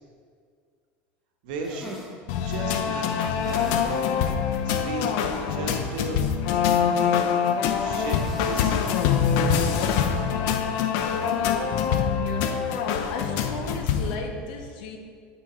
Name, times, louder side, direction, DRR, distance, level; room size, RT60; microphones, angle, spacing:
voice 1, 1.4-2.0 2.4-4.2 4.6-6.2 7.4-8.9, right 3 dB, 80° right, 2 dB, 1.1 m, -36 dB
sound 1, 1.6-2.2 3.3-4.1 4.5-4.6 5.0-5.1 7.7-8.9 9.3-9.4 11.0-11.3, equal, ahead, 1.0 m, -43 dB
sound 2, 2.3-14.2, left 7 dB, 65° left, 0.6 m, -24 dB
voice 2, 11.0-11.9 12.2-12.8 13.1-15.0, left 4 dB, 85° left, 4 dB, 0.9 m, -36 dB
8.6 x 4.0 x 4.4 m, 2.1 s
cardioid pair, 150°, 5 cm